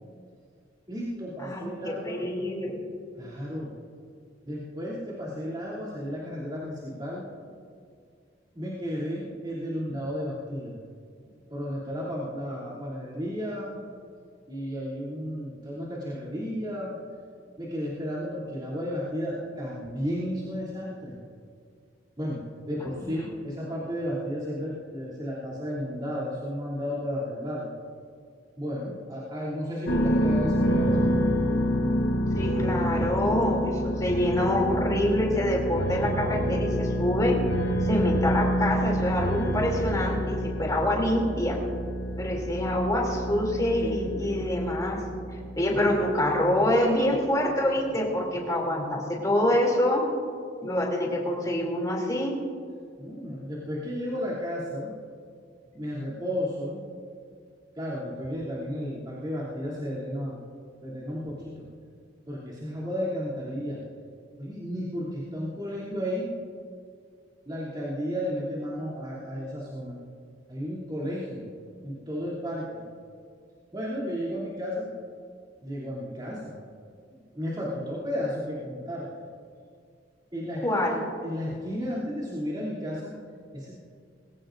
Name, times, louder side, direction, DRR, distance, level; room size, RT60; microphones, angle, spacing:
voice 1, 0.9-2.2 3.2-3.7 4.4-7.2 8.5-10.7 11.5-13.9 14.5-17.0 17.6-21.2 22.2-27.7 28.6-31.1 53.0-54.9 55.7-56.9 57.7-60.3 60.8-61.6 62.3-63.8 64.4-66.3 67.5-70.0 70.5-71.5 71.8-72.8 73.7-74.9 75.6-76.6 77.1-79.1 80.3-83.1 83.5-83.8, equal, 25° right, -9 dB, 2.9 m, -33 dB
voice 2, 1.4-2.8 22.8-23.1 32.4-37.4 37.9-41.6 42.2-45.0 45.6-50.0 50.6-52.4 80.6-81.0, left 1 dB, 20° left, -1 dB, 2.9 m, -26 dB
sound 1, 29.9-46.4, equal, 70° left, 1.0 m, -28 dB
20.5 x 18.0 x 2.6 m, 2.2 s
head